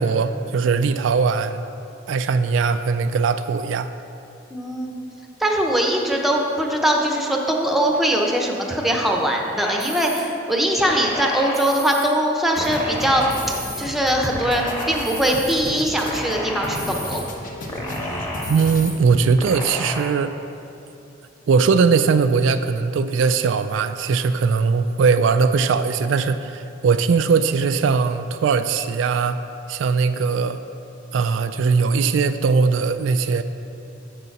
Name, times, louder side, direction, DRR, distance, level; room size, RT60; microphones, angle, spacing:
voice 1, 0.0-1.6 2.1-3.9 18.5-20.4 21.5-29.4 29.7-30.6 31.1-33.4, right 5 dB, 80° right, 10 dB, 0.3 m, -20 dB
voice 2, 4.5-4.9 5.4-13.2 13.8-17.3, right 1 dB, ahead, 1 dB, 0.8 m, -21 dB
sound 1, 9.6-10.2 10.8-12.0 12.6-13.8 14.3-15.5 16.0-17.2 17.7-18.9 19.4-20.0, left 1 dB, 20° left, 1.4 m, -31 dB
sound 2, 12.6-19.2, left 1 dB, 45° left, 0.9 m, -34 dB
7.3 x 6.8 x 5.9 m, 2.8 s
head